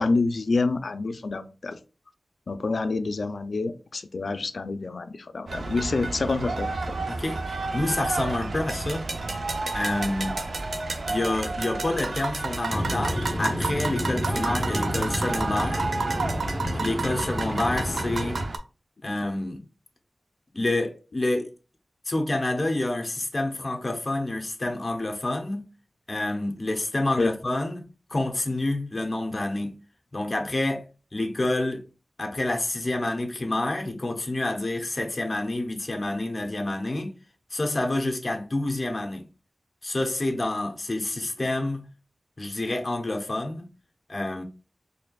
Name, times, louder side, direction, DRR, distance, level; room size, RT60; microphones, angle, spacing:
voice 1, 0.0-1.8 2.5-6.7 27.2-27.3, left 3 dB, 75° left, 0.4 m, -27 dB
sound 1, 5.5-18.6, right 3 dB, 75° right, 0.5 m, -31 dB
voice 2, 7.1-7.4 7.7-9.1 9.7-10.4 11.1-15.9 16.7-18.4 19.0-19.6 20.5-21.5 22.0-25.6 26.1-27.8 28.1-29.7 30.1-30.9 31.1-31.8 32.2-37.1 37.5-39.3 39.8-41.8 42.4-43.6 44.1-44.4, left 2 dB, 35° left, 0.8 m, -28 dB
sound 2, 12.7-18.4, equal, 20° left, 1.1 m, -30 dB
4.2 x 3.3 x 2.3 m
wide cardioid pair, 95°, 0 cm